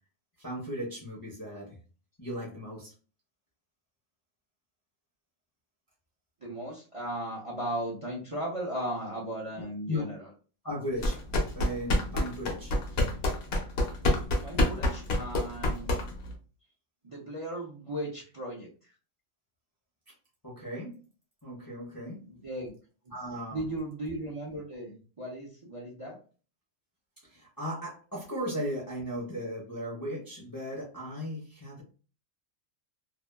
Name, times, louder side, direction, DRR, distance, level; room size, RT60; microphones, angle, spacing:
voice 1, 0.4-1.8 2.2-2.9 9.6-10.1 10.6-11.2 11.5-12.7 20.4-21.0 21.4-22.2 23.1-23.7 27.2-31.8, equal, 20° left, -4 dB, 0.6 m, -36 dB
voice 2, 6.4-10.2 14.4-15.9 17.0-18.7 22.3-22.7 23.1-23.2 23.5-26.2, right 1 dB, 35° right, -4 dB, 0.5 m, -36 dB
sound 1, 11.0-16.3, left 1 dB, 60° left, 0.9 m, -27 dB
2.7 x 2.3 x 2.2 m, 0.37 s
omnidirectional pair, 1.4 m